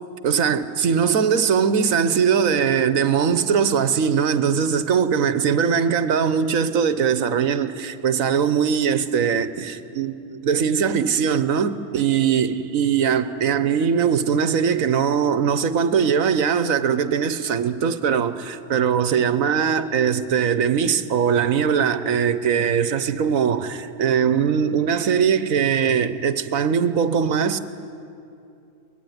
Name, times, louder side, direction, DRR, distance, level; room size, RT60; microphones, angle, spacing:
voice 1, 0.2-27.6, right 7 dB, 85° right, 1.4 m, -21 dB
23.5 x 20.5 x 9.6 m
omnidirectional pair, 1.4 m